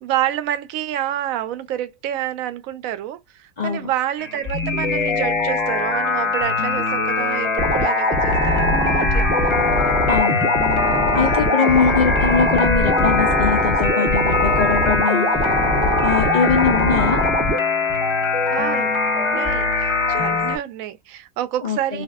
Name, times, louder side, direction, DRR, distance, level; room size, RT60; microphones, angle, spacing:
voice 1, 0.0-9.3 11.2-11.9 18.5-22.0, right 12 dB, 75° right, 1.0 m, -28 dB
voice 2, 3.6-3.9 10.1-10.5 11.1-15.3 15.9-17.2 21.6-22.0, left 5 dB, 75° left, 0.4 m, -22 dB
sound 1, 4.2-20.6, left 3 dB, 25° left, 0.7 m, -22 dB
sound 2, 7.6-17.6, left 1 dB, 15° right, 0.4 m, -22 dB
3.4 x 2.4 x 2.3 m
omnidirectional pair, 1.5 m